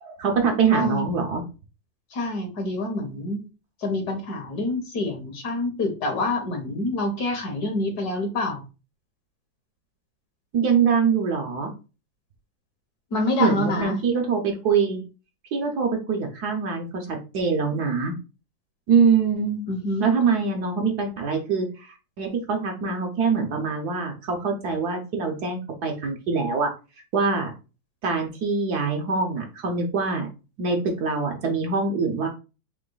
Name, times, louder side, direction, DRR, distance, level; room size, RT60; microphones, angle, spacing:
voice 1, 0.0-1.4 10.5-11.7 13.4-15.0 15.5-18.1 18.9-19.6 20.0-26.7 27.1-27.5 28.0-30.3 30.6-32.3, right 5 dB, 65° right, 2 dB, 1.1 m, -24 dB
voice 2, 0.7-1.1 2.1-3.4 3.8-8.6 13.1-14.0 19.7-20.1, left 2 dB, 60° left, 5 dB, 1.4 m, -27 dB
3.9 x 3.0 x 3.8 m, 0.31 s
omnidirectional pair, 2.1 m